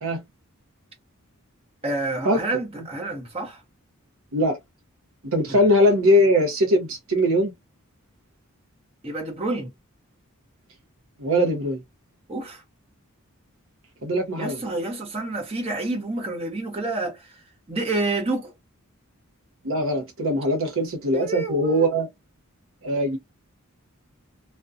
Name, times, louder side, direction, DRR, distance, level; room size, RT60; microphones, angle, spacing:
voice 1, 1.8-3.6 5.4-5.6 9.0-9.7 12.3-12.6 14.4-18.5 21.1-21.9, right 2 dB, 25° right, 0.8 m, -29 dB
voice 2, 5.2-7.5 11.2-11.8 14.0-14.6 19.6-22.1 22.8-23.2, equal, 65° right, 0.6 m, -21 dB
2.3 x 2.2 x 2.4 m
head